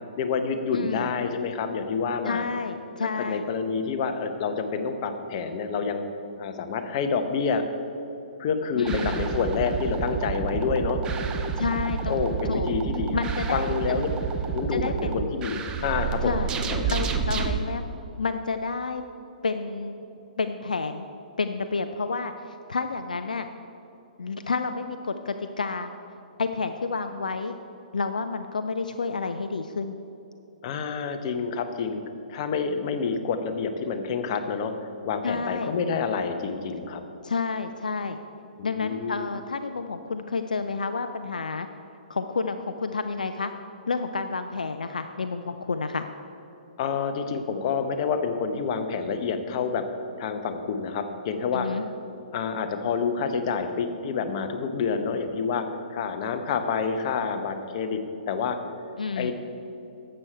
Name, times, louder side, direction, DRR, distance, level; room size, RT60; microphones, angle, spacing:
voice 1, 0.2-2.5 3.0-6.0 6.4-7.6 8.4-11.0 12.1-13.2 13.5-14.1 14.5-16.4 16.7-16.9 30.6-32.0 32.3-34.7 35.0-37.0 38.6-39.3 46.8-49.8 50.2-51.7 52.3-55.6 55.9-58.0 58.3-58.6 59.2-59.3, left 5 dB, 40° left, 7 dB, 0.8 m, -28 dB
voice 2, 0.7-1.1 2.2-3.4 8.7-9.3 11.6-12.2 12.5-12.7 13.1-13.8 14.7-15.3 16.2-16.5 16.9-17.8 18.2-19.0 19.4-20.0 20.4-21.1 21.4-23.5 24.2-25.9 26.4-27.5 27.9-30.0 35.2-35.7 37.2-38.2 38.6-41.7 42.1-43.5 43.9-46.1 51.5-51.8 59.0-59.3, left 4 dB, 70° left, 8 dB, 0.4 m, -30 dB
sound 1, 8.8-17.6, right 6 dB, 20° right, 0.6 m, -29 dB
12.0 x 7.8 x 4.5 m, 2.8 s
figure-of-eight pair, 120°, 4 cm